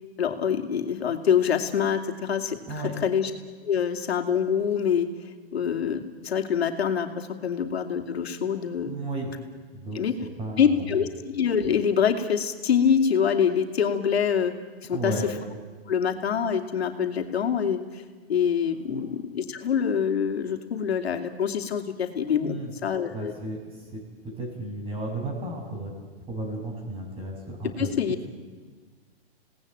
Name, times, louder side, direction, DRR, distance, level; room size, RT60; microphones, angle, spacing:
voice 1, 0.2-2.6 3.0-3.3 3.6-5.1 5.5-8.9 9.9-10.2 10.6-11.1 11.3-14.5 14.9-15.1 15.9-17.8 18.3-22.6 22.8-23.3 27.8-28.1, left 7 dB, 80° left, 5 dB, 2.8 m, -25 dB
voice 2, 8.8-9.3 9.7-10.0 10.4-11.0 14.9-15.3 18.8-19.0 22.4-22.7 23.1-25.9 26.3-28.2, right 2 dB, 20° right, 2 dB, 6.9 m, -34 dB
28.0 x 18.5 x 9.1 m, 1.5 s
hypercardioid pair, 145°, 31 cm